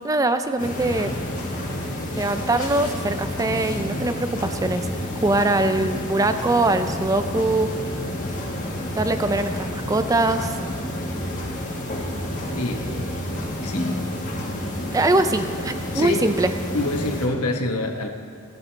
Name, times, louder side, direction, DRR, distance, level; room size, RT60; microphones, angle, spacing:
voice 1, 0.0-1.1 2.1-4.9 5.2-7.7 8.9-10.6 14.9-16.5, right 2 dB, 15° right, 9 dB, 0.4 m, -22 dB
sound 1, 0.6-17.3, left 1 dB, 35° left, 1.6 m, -29 dB
voice 2, 13.6-14.0 15.9-16.4 16.7-18.1, left 2 dB, 85° left, 3 dB, 1.2 m, -26 dB
18.0 x 11.5 x 3.3 m, 2.2 s
head